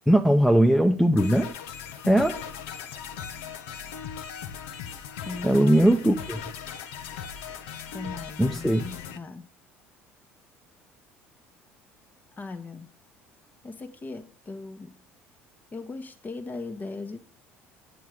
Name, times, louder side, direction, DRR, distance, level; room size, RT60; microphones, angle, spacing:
voice 1, 0.1-1.5 2.1-2.4 5.4-6.4 8.4-8.8, right 1 dB, ahead, 0.8 m, -20 dB
sound 1, 1.2-9.2, left 7 dB, 75° left, 0.9 m, -38 dB
voice 2, 5.2-5.8 7.9-9.5 12.4-12.9 13.6-14.9 15.7-17.2, left 3 dB, 30° left, 1.2 m, -38 dB
9.3 x 7.8 x 4.8 m
hypercardioid pair, 65°, 6 cm